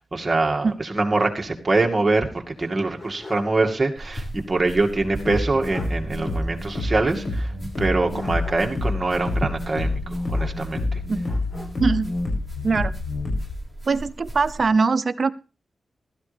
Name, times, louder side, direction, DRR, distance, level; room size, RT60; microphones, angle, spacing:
voice 1, 0.0-11.0, right 2 dB, 30° right, 1 dB, 2.3 m, -24 dB
sound 1, 2.6-3.6 3.9-4.0 5.3-5.4 5.7-6.0 8.1-8.9 10.3-10.9 11.2-12.1, left 2 dB, 40° left, 4.5 m, -43 dB
sound 2, 4.0-14.7, right 1 dB, 15° left, 5.2 m, -40 dB
sound 3, 5.0-13.6, left 2 dB, 60° left, 7.5 m, -28 dB
voice 2, 12.6-12.9 13.9-15.3, right 4 dB, 55° right, 13 dB, 0.7 m, -21 dB
16.0 x 13.0 x 3.5 m, 0.33 s
cardioid pair, 75°, 0 cm